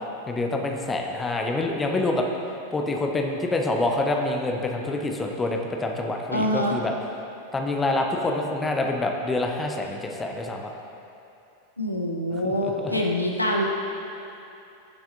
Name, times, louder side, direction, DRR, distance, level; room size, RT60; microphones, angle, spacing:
voice 1, 0.3-2.3 2.7-6.9 7.5-10.7 12.4-13.0, left 2 dB, 15° left, 2 dB, 0.8 m, -26 dB
voice 2, 6.3-6.8 11.8-13.7, equal, 85° left, 0 dB, 0.9 m, -25 dB
15.0 x 7.1 x 2.6 m, 2.7 s
figure-of-eight pair, 90°, 0 cm